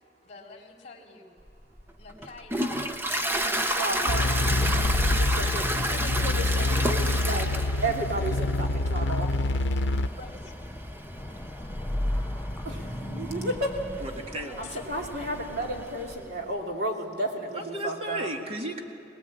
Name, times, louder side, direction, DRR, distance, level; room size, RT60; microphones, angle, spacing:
voice 1, 0.2-1.3 2.0-4.4 9.9-11.0 14.6-15.4, left 3 dB, 40° left, 1 dB, 3.2 m, -48 dB
Toilet flush, 1.5-16.2, right 1 dB, 10° right, 0.9 m, -33 dB
voice 2, 3.8-4.5 5.1-7.5 7.8-9.3 12.7-13.8 14.6-18.3, right 1 dB, 60° right, 1 dB, 2.9 m, -32 dB
sound 1, 3.9-16.5, left 1 dB, 15° left, 0.6 m, -36 dB
sound 2, 4.1-10.1, left 2 dB, 85° left, 0.7 m, -27 dB
voice 3, 14.0-14.6 17.5-18.8, equal, 35° right, 2 dB, 2.2 m, -34 dB
23.0 x 19.5 x 8.6 m, 2.9 s
head